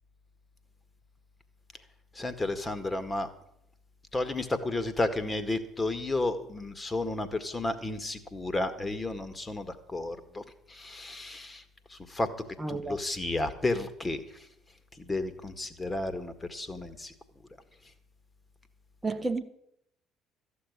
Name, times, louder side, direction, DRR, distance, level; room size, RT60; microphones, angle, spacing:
voice 1, 2.2-3.3 4.1-11.6 11.9-12.3 12.7-14.2 15.0-17.1, left 2 dB, 20° left, 1.9 m, -32 dB
voice 2, 12.6-13.0 19.0-19.4, right 3 dB, 15° right, 1.1 m, -31 dB
14.0 x 7.0 x 9.9 m
figure-of-eight pair, 55°, 0 cm